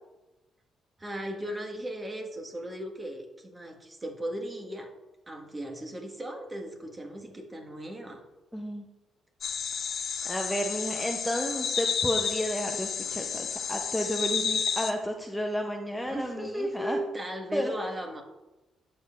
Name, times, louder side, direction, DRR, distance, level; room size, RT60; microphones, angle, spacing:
voice 1, 1.0-4.9 5.3-8.2 10.5-10.6 16.1-18.2, right 1 dB, 25° right, 2 dB, 1.5 m, -36 dB
voice 2, 8.5-8.9 10.2-17.0 17.5-17.7, equal, 5° left, 2 dB, 0.7 m, -32 dB
sound 1, 9.4-14.9, left 6 dB, 55° left, 0.8 m, -31 dB
11.0 x 7.7 x 2.5 m, 1.1 s
cardioid pair, 90°, 0 cm